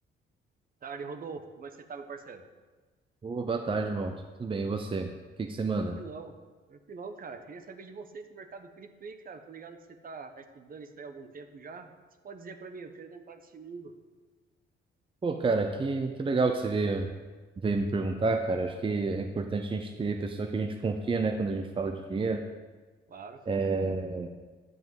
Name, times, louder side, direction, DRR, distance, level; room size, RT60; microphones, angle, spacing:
voice 1, 0.8-2.4 6.0-6.4 6.7-9.8 10.0-11.9 12.2-13.9 23.1-23.4, right 4 dB, 45° right, 8 dB, 1.0 m, -43 dB
voice 2, 3.2-5.1 5.4-6.0 15.2-17.1 17.6-22.4 23.5-24.3, right 3 dB, 25° right, 5 dB, 0.7 m, -29 dB
9.8 x 5.4 x 7.4 m, 1.4 s
cardioid pair, 90°, 20 cm